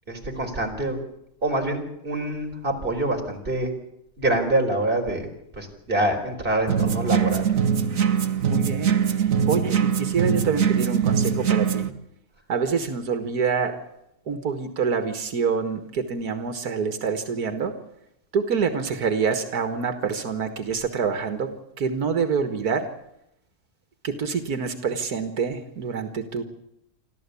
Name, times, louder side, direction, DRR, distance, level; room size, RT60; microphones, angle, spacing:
voice 1, 0.1-1.0 1.4-3.7 4.2-5.3 5.6-7.5, right 1 dB, 35° right, 2 dB, 4.4 m, -25 dB
sound 1, 6.7-11.9, right 7 dB, 60° right, 1.6 m, -22 dB
voice 2, 8.4-8.9 9.5-11.8 12.5-13.8 14.3-17.8 18.3-21.5 21.8-22.9 24.0-26.4, right 6 dB, 85° right, 8 dB, 2.1 m, -26 dB
26.5 x 14.0 x 8.4 m, 0.80 s
omnidirectional pair, 1.6 m